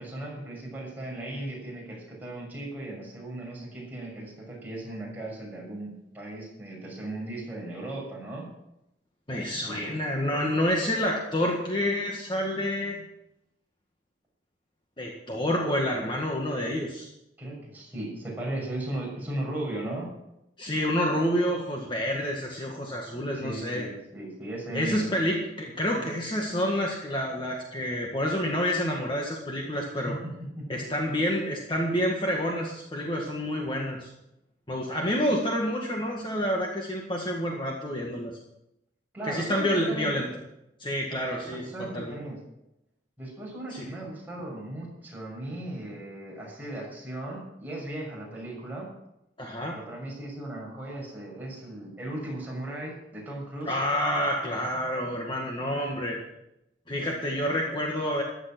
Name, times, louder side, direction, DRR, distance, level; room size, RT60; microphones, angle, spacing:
voice 1, 0.0-8.5 9.7-9.9 17.4-20.1 23.3-25.2 26.0-26.1 30.1-30.7 39.1-40.2 41.4-42.4 43.2-48.9 49.7-53.8, right 1 dB, 10° right, -4 dB, 6.6 m, -37 dB
voice 2, 9.3-13.0 15.0-17.1 20.6-23.9 24.7-30.2 30.7-34.1 34.7-38.3 39.2-40.3 40.8-41.6 41.9-42.2 43.7-43.9 49.4-49.8 53.7-56.2 56.9-58.2, equal, 25° left, -1 dB, 1.8 m, -28 dB
15.0 x 11.0 x 6.1 m, 0.86 s
head